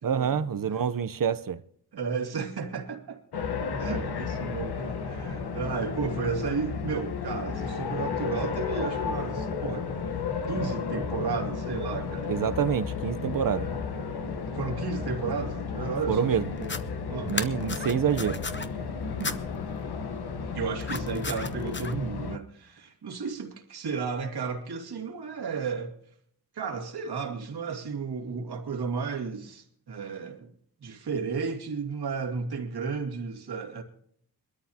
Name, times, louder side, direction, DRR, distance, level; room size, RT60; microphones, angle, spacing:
voice 1, 0.0-1.6 12.3-13.7 16.1-16.5 17.3-18.4, right 8 dB, 60° right, 0.8 m, -27 dB
voice 2, 1.9-3.2 3.8-9.9 10.5-12.7 14.5-16.7 17.1-17.3 19.2-19.4 20.5-26.0 26.5-30.5 30.8-33.8, right 5 dB, 80° right, 2.6 m, -33 dB
sound 1, 3.3-22.4, left 5 dB, 80° left, 1.2 m, -33 dB
sound 2, 16.6-16.8 17.3-18.7 19.2-19.4 20.8-21.9, left 4 dB, 30° left, 1.0 m, -34 dB
22.5 x 13.0 x 2.9 m
wide cardioid pair, 95°, 38 cm